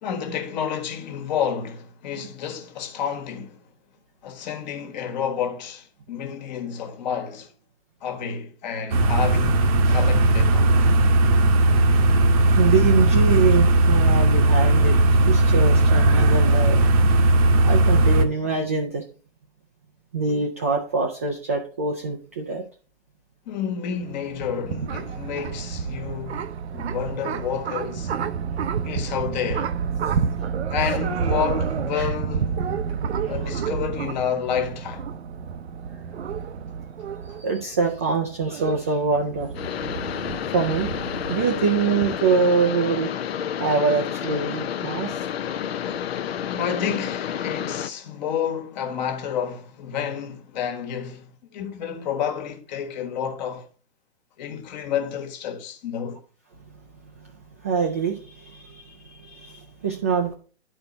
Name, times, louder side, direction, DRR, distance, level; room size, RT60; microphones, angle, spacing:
voice 1, 0.0-3.6 4.2-7.5 8.0-10.7 23.4-26.4 26.7-28.1 28.8-29.7 30.7-32.6 33.3-35.1 37.3-37.4 46.5-53.7 54.4-56.2, left 8 dB, 40° left, 1.5 m, -30 dB
sound 1, 8.9-18.2, right 1 dB, 30° right, 0.8 m, -17 dB
voice 2, 12.6-15.0 15.2-16.9 17.6-19.0 20.1-22.6 31.9-32.1 33.2-33.3 37.3-39.5 40.5-40.9 41.3-43.1 43.6-45.2 57.2-57.3 57.6-60.3, right 5 dB, 15° right, 0.3 m, -24 dB
sound 2, 24.0-42.1, right 6 dB, 70° right, 0.7 m, -30 dB
sound 3, 39.5-47.9, left 9 dB, 65° left, 0.7 m, -30 dB
11.0 x 4.4 x 3.9 m
hypercardioid pair, 140°, 34 cm